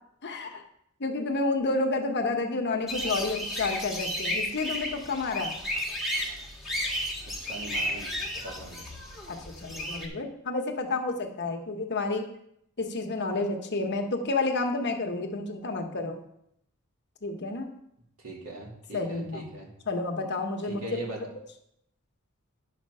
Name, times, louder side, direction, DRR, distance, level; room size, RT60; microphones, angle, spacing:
voice 1, 0.2-0.6 1.0-5.5 9.3-12.3 12.8-16.2 17.2-17.7 18.9-19.5 19.9-20.8, left 3 dB, 50° left, 3 dB, 1.2 m, -30 dB
sound 1, 2.9-10.1, equal, ahead, 1.7 m, -33 dB
voice 2, 7.5-8.1 8.4-8.9 18.2-19.7 20.6-21.2, right 1 dB, 75° right, -1 dB, 2.7 m, -40 dB
10.5 x 5.9 x 5.5 m, 0.76 s
head